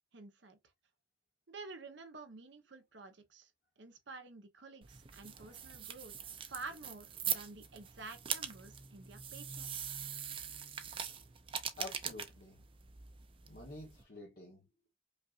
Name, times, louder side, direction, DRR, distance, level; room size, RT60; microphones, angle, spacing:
voice 1, 0.1-0.6 1.5-3.5 3.8-9.9, right 3 dB, 65° right, 0.8 m, -50 dB
sound 1, 4.8-14.0, right 8 dB, 25° right, 0.4 m, -42 dB
voice 2, 11.8-12.6 13.4-14.7, left 2 dB, 50° left, 0.9 m, -49 dB
5.2 x 2.5 x 2.4 m
head